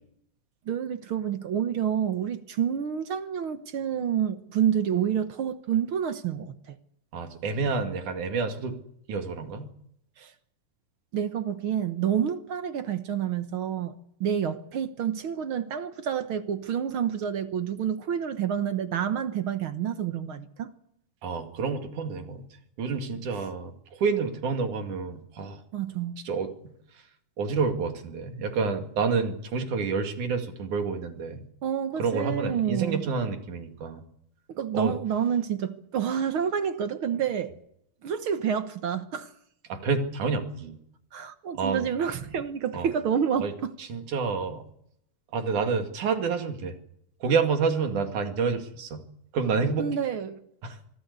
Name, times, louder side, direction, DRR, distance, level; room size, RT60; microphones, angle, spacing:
voice 1, 0.7-6.8 10.2-10.3 11.1-13.9 14.2-20.7 25.7-26.2 31.6-33.0 34.5-37.5 38.0-39.3 41.1-43.7 49.8-50.4, right 8 dB, 60° right, 1.6 m, -28 dB
voice 2, 7.1-8.8 9.1-9.7 21.2-22.4 22.8-25.6 26.3-26.5 27.4-31.5 32.0-34.0 34.7-35.0 39.7-40.8 41.5-41.9 42.7-42.9 43.4-43.5 43.8-44.6 45.3-46.8 47.2-49.0 49.3-49.9 50.6-50.8, right 5 dB, 90° right, 3.8 m, -28 dB
25.0 x 16.0 x 8.3 m
omnidirectional pair, 3.4 m